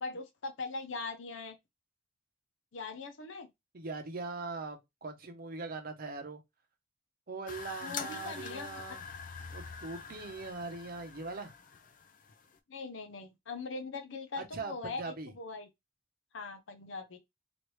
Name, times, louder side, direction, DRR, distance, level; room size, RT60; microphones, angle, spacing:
voice 1, 0.0-1.6 2.7-3.5 7.8-8.8 12.7-15.0 15.4-15.7 16.3-17.2, left 3 dB, 85° left, 0.7 m, -41 dB
voice 2, 3.7-6.4 7.3-9.0 9.5-11.5 14.4-15.3, right 3 dB, 50° right, 0.7 m, -41 dB
sound 1, 7.5-12.6, left 5 dB, 45° left, 0.5 m, -45 dB
3.2 x 2.5 x 3.0 m
head